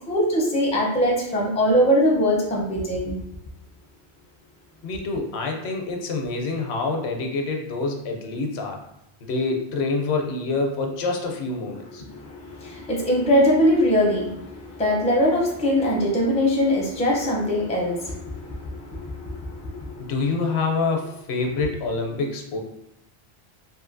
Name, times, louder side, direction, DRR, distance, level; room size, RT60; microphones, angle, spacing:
voice 1, 0.1-3.2 12.0-20.3 21.6-21.7, equal, 10° left, -3 dB, 0.4 m, -22 dB
voice 2, 4.8-8.8 9.2-12.1 20.0-22.6, left 3 dB, 80° left, 2 dB, 0.8 m, -26 dB
3.0 x 2.6 x 2.5 m, 0.87 s
omnidirectional pair, 1.1 m